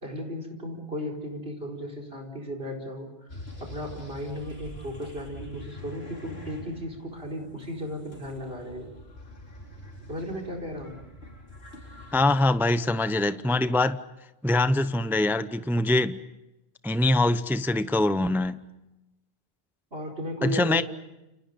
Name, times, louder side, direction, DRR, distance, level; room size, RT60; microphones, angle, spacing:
voice 1, 0.0-8.9 10.1-11.0 19.9-20.8, equal, 60° right, 4 dB, 4.9 m, -35 dB
sound 1, 3.3-12.5, left 1 dB, 65° left, 4.4 m, -45 dB
voice 2, 12.1-14.0 14.4-16.2 16.8-18.6 20.4-20.8, left 2 dB, ahead, 12 dB, 0.7 m, -23 dB
30.0 x 28.5 x 5.2 m, 0.94 s
omnidirectional pair, 1.1 m